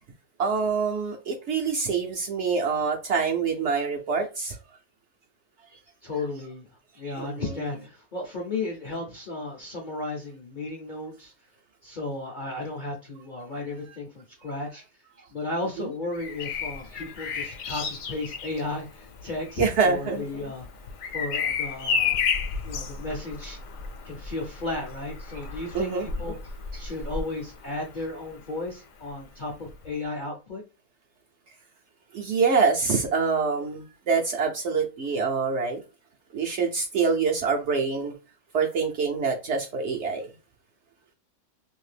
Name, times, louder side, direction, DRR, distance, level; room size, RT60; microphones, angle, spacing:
voice 1, 0.4-4.6 7.0-7.4 19.6-20.2 25.7-26.1 32.1-35.8 36.3-38.1 38.5-40.3, right 5 dB, 65° right, 0.7 m, -25 dB
voice 2, 6.0-6.7 7.0-11.3 11.8-14.8 15.3-20.7 21.1-22.2 22.6-23.6 24.0-26.4 26.8-30.6, left 2 dB, 55° left, 0.5 m, -34 dB
Bird vocalization bird call bird song, 16.1-27.9 29.7-29.9, left 6 dB, 70° left, 1.0 m, -32 dB
2.7 x 2.4 x 3.2 m
omnidirectional pair, 1.5 m